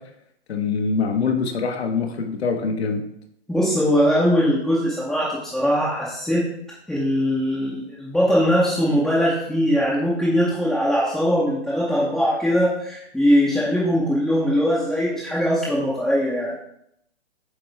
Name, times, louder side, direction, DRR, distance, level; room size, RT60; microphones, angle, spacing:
voice 1, 0.5-3.0, left 5 dB, 65° left, 5 dB, 1.2 m, -24 dB
voice 2, 3.5-6.5 6.9-16.5, equal, ahead, -10 dB, 0.8 m, -21 dB
8.2 x 4.4 x 3.4 m, 0.76 s
hypercardioid pair, 145°, 34 cm